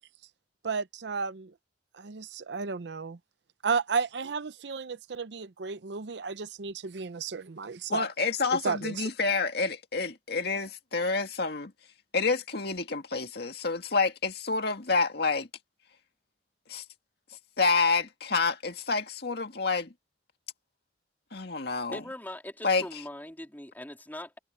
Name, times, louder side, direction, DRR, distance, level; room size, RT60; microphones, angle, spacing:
voice 1, 0.6-1.5 1.9-3.2 3.6-8.1 8.6-9.0, right 5 dB, 65° right, 0.6 m, -33 dB
voice 2, 7.9-11.7 12.1-15.5 16.7-16.8 17.6-19.9 21.3-22.0 22.6-22.8, left 4 dB, 60° left, 2.1 m, -28 dB
voice 3, 21.9-24.4, left 1 dB, 10° left, 3.4 m, -41 dB
head